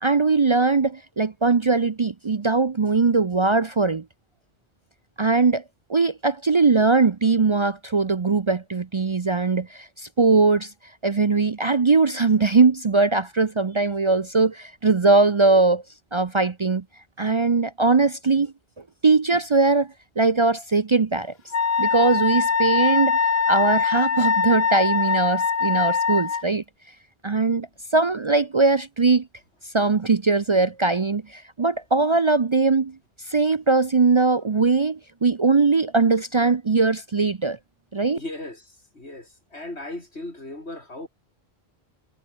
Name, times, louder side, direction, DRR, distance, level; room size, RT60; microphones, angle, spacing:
voice 1, 0.0-4.0 5.2-5.6 5.9-10.7 11.0-15.8 16.1-16.8 17.2-18.5 19.0-21.3 21.8-23.2 23.5-26.6 27.2-27.7 27.9-29.3 29.7-33.0 33.3-37.6 37.9-38.2, right 3 dB, 35° right, 0.6 m, -20 dB
Wind instrument woodwind instrument, 21.5-26.4, left 6 dB, 70° left, 1.6 m, -22 dB
voice 2, 38.1-41.1, left 2 dB, 90° left, 6.0 m, -37 dB
omnidirectional pair, 1.1 m